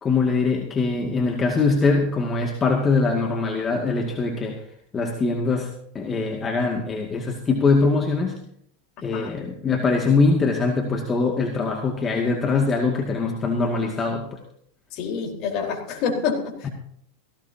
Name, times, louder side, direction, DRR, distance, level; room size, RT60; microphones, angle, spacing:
voice 1, 0.0-4.6 4.9-8.4 9.0-14.4 16.6-16.7, left 4 dB, 25° left, 1 dB, 2.3 m, -22 dB
voice 2, 14.9-16.7, left 6 dB, 50° left, 1 dB, 4.4 m, -27 dB
18.0 x 16.5 x 2.9 m, 0.68 s
hypercardioid pair, 90°, 0 cm